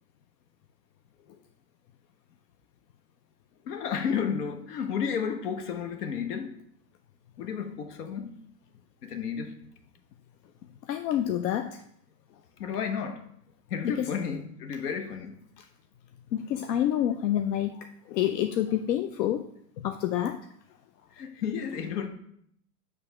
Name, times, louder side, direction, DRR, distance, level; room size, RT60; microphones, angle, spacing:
voice 1, 3.6-6.5 7.4-8.4 9.0-9.5 12.6-13.2 13.7-15.4 21.1-22.1, left 7 dB, 70° left, 1.0 m, -32 dB
voice 2, 10.8-11.8 13.8-14.1 15.6-15.7 16.3-19.4 19.8-20.4, left 11 dB, 85° left, 0.6 m, -28 dB
7.0 x 3.3 x 5.7 m
supercardioid pair, 175°, 48 cm